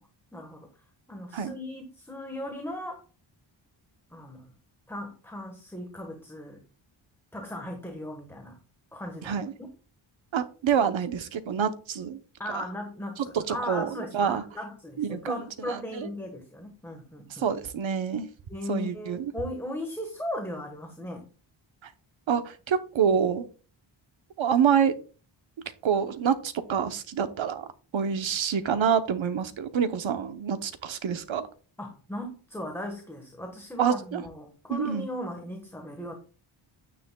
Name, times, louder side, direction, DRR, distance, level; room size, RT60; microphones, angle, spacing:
voice 1, 0.3-0.7 1.1-3.0 4.1-4.5 4.9-6.6 7.3-8.6 8.9-9.7 12.4-17.5 18.5-21.2 31.8-36.1, left 1 dB, 5° left, 3 dB, 1.3 m, -37 dB
voice 2, 9.2-9.5 10.3-12.2 12.5-12.6 13.2-14.4 15.0-16.1 17.3-18.3 18.7-19.3 21.8-21.9 22.3-23.5 24.4-24.9 25.8-27.7 27.9-31.5 33.8-34.2 34.7-35.1, right 7 dB, 70° right, 11 dB, 0.9 m, -27 dB
9.8 x 9.4 x 2.3 m, 0.37 s
wide cardioid pair, 120°, 49 cm